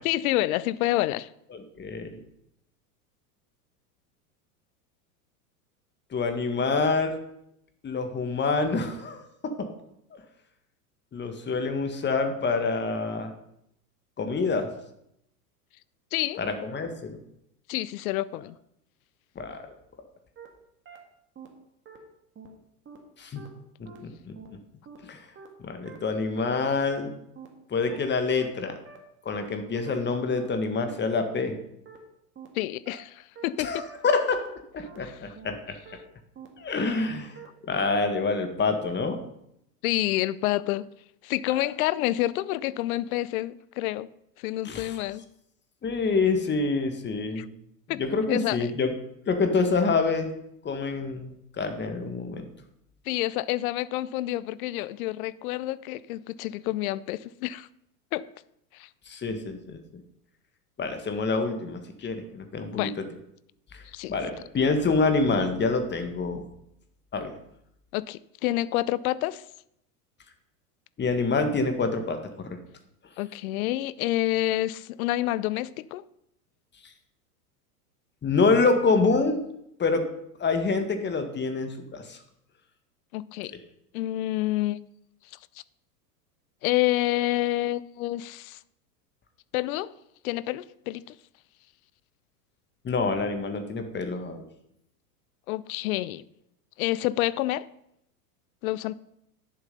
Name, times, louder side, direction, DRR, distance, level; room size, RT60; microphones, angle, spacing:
voice 1, 0.0-1.3 16.1-16.4 17.7-18.6 32.5-33.8 35.0-35.4 39.8-40.8 41.2-44.1 44.4-45.2 47.4-47.5 47.9-48.0 48.3-48.7 53.1-57.7 58.1-58.3 58.7-58.9 62.7-62.9 63.9-64.1 67.9-69.4 73.2-76.0 83.1-83.5 83.9-84.8 86.6-88.6 89.5-89.9 90.2-91.0 95.5-96.2 96.8-97.7 98.6-98.9, left 16 dB, 65° left, 0.7 m, -28 dB
voice 2, 1.5-2.2 6.1-7.2 7.8-9.7 10.1-10.2 11.1-13.3 14.2-14.7 16.4-17.2 19.4-19.6 23.2-23.4 23.8-24.3 25.1-25.2 25.6-27.1 27.7-28.8 29.3-31.6 33.6-34.4 34.7-35.6 36.6-37.4 37.6-39.2 44.7-45.0 45.8-47.4 47.9-48.9 49.3-50.3 50.6-52.4 59.1-59.8 60.8-62.9 63.7-63.8 64.1-66.4 67.1-67.3 71.0-72.6 78.2-79.4 79.8-80.1 80.4-82.2 92.8-94.5, left 4 dB, 25° left, 1.7 m, -26 dB
sound 1, 20.4-20.5 20.9-21.0 21.4-21.5 21.9-22.0 22.4-22.5 22.9-23.0 23.4-23.5 23.9-24.0 24.4-24.5 24.9-25.0 25.4-25.5 25.9-26.0 26.4-26.5 26.9-27.0 27.4-27.5 27.9-28.0 28.4-28.5 28.9-29.0 29.4-29.5 29.9-30.0 30.4-30.5 30.9-31.0 31.4-31.5 31.9-32.0 32.4-32.5 32.9-33.0 33.4-33.5 33.9-34.0 34.4-34.5 34.9-35.0 35.4-35.5 35.9-36.0 36.4-36.5 36.9-37.0 37.4-37.5 37.9-38.0, right 7 dB, 25° right, 2.2 m, -45 dB
10.5 x 7.2 x 5.4 m
hypercardioid pair, 105°, 47 cm